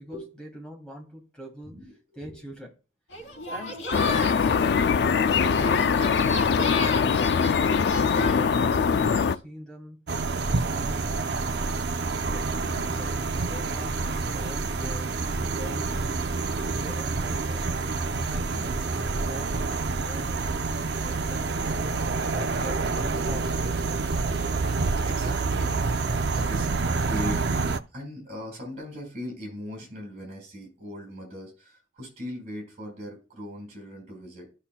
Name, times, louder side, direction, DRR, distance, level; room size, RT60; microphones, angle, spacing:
voice 1, 0.0-1.8 2.1-2.7 3.5-7.2 8.0-10.0 10.5-11.8 12.3-15.1 15.5-16.3 16.7-17.8 18.2-20.6 21.0-21.9 22.3-23.8, equal, 5° left, 2.7 m, -43 dB
voice 2, 1.6-2.4 24.7-34.5, equal, 35° right, 4.8 m, -39 dB
sound 1, 3.1-9.4, left 2 dB, 75° left, 2.8 m, -35 dB
sound 2, 3.9-9.3, left 6 dB, 55° left, 0.3 m, -22 dB
sound 3, 10.1-27.8, right 3 dB, 60° right, 0.6 m, -28 dB
14.5 x 5.8 x 2.2 m
head